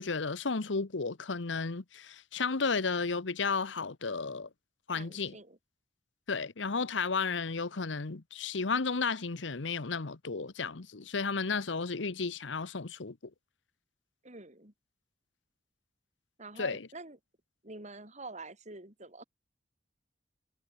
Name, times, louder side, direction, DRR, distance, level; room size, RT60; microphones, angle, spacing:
voice 1, 0.0-4.5 4.9-5.3 6.3-13.2 16.6-16.8, left 4 dB, 90° left, 1.0 m, -33 dB
voice 2, 4.9-5.6 14.2-14.7 16.4-17.2 17.6-19.2, right 3 dB, 40° right, 7.8 m, -47 dB
head